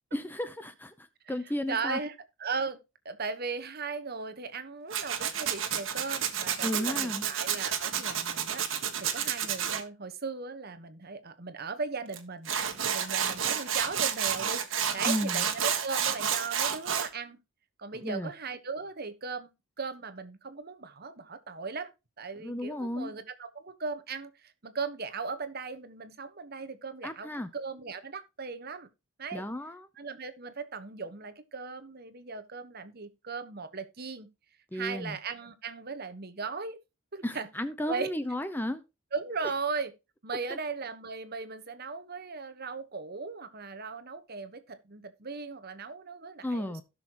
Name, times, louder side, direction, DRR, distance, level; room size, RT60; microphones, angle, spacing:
voice 1, 0.1-2.0 6.6-7.3 15.1-15.4 17.9-18.3 22.4-23.1 27.0-27.5 29.3-29.9 34.7-35.2 37.2-38.8 40.5-40.6 46.4-46.8, left 1 dB, 10° left, 0.6 m, -33 dB
voice 2, 1.7-2.8 3.0-8.6 9.0-12.5 12.9-14.6 14.9-17.4 17.8-19.5 19.8-21.9 22.2-28.9 29.2-29.5 30.0-34.3 34.7-36.8 37.1-37.5 37.9-38.1 39.1-39.9 40.2-46.8, right 4 dB, 45° right, 1.2 m, -37 dB
Tools, 4.9-9.8 12.1-12.2 12.4-17.1, right 8 dB, 65° right, 1.6 m, -30 dB
16.0 x 6.4 x 3.0 m
head